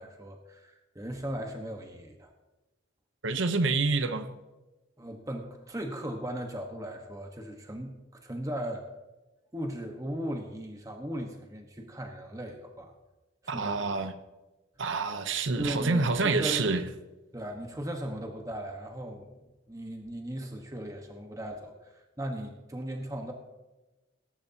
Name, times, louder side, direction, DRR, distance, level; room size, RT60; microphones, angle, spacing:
voice 1, 0.0-2.3 5.0-8.8 9.5-12.9 13.4-13.8 15.6-16.7 17.3-23.3, right 1 dB, 15° right, 3 dB, 1.2 m, -37 dB
voice 2, 3.2-4.4 13.5-14.1 14.8-16.8, right 3 dB, 70° right, 9 dB, 0.8 m, -27 dB
20.0 x 11.0 x 2.8 m, 1.1 s
head